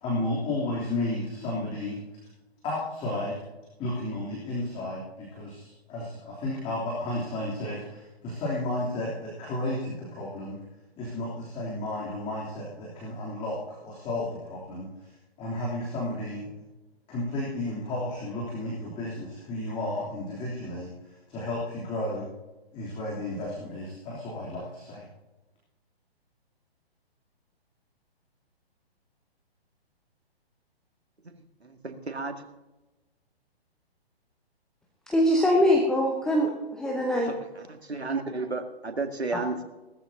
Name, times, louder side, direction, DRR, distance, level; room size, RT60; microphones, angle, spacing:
voice 1, 0.0-2.0 2.6-3.4 3.8-10.6 11.0-14.9 15.4-16.5 17.1-20.9 21.3-22.3 22.7-25.0, left 1 dB, 20° left, -5 dB, 3.2 m, -32 dB
voice 2, 31.2-32.3 37.3-39.6, right 3 dB, 80° right, 6 dB, 2.0 m, -33 dB
voice 3, 35.1-37.3 39.3-39.4, equal, ahead, -1 dB, 0.8 m, -23 dB
18.0 x 14.0 x 2.8 m, 1.1 s
figure-of-eight pair, 130°, 32 cm